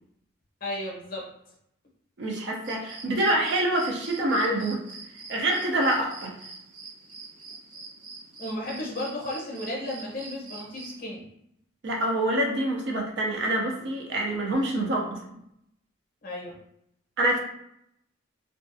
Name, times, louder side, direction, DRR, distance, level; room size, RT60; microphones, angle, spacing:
voice 1, 0.6-1.3 8.4-11.2 16.2-16.6, left 1 dB, 45° left, -2 dB, 0.7 m, -34 dB
voice 2, 2.2-4.8 5.3-6.4 11.8-15.2 17.2-17.4, right 1 dB, 55° right, 0 dB, 0.4 m, -26 dB
sound 1, 2.6-11.0, right 3 dB, 90° right, 1.3 m, -45 dB
2.4 x 2.3 x 2.5 m, 0.76 s
head